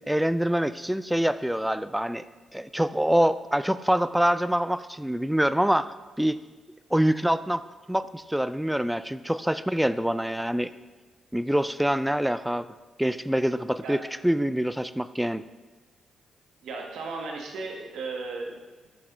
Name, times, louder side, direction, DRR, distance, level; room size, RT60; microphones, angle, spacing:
voice 1, 0.1-2.2 2.5-6.4 6.9-7.6 7.9-10.7 11.3-12.7 13.0-15.4, equal, 5° right, 14 dB, 0.3 m, -25 dB
voice 2, 16.6-18.6, right 3 dB, 75° right, 1 dB, 1.0 m, -35 dB
7.3 x 6.2 x 3.5 m, 1.3 s
hypercardioid pair, 40°, 0 cm